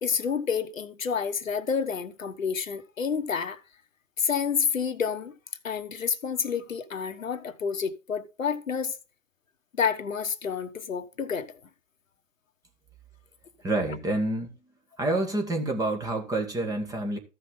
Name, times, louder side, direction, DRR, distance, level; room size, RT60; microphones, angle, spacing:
voice 1, 0.0-3.6 4.2-5.3 5.6-9.0 9.7-11.5, left 6 dB, 85° left, 1.3 m, -29 dB
voice 2, 13.6-14.5 15.0-17.2, right 2 dB, 10° right, 1.6 m, -28 dB
14.5 x 5.7 x 3.7 m
hypercardioid pair, 135°, 39 cm